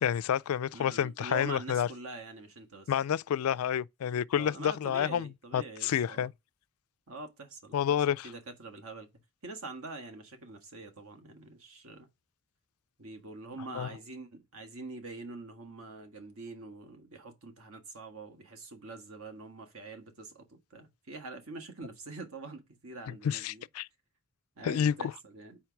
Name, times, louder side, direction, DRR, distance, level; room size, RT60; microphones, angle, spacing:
voice 1, 0.0-1.9 2.9-6.3 7.7-8.3 13.7-13.9 23.2-23.9 24.6-25.1, left 9 dB, 80° left, 0.3 m, -29 dB
voice 2, 0.7-2.9 4.3-6.3 7.1-8.0 8.2-9.1 9.4-12.1 13.0-23.6 24.6-25.6, right 3 dB, 75° right, 1.5 m, -45 dB
4.5 x 4.4 x 5.8 m
head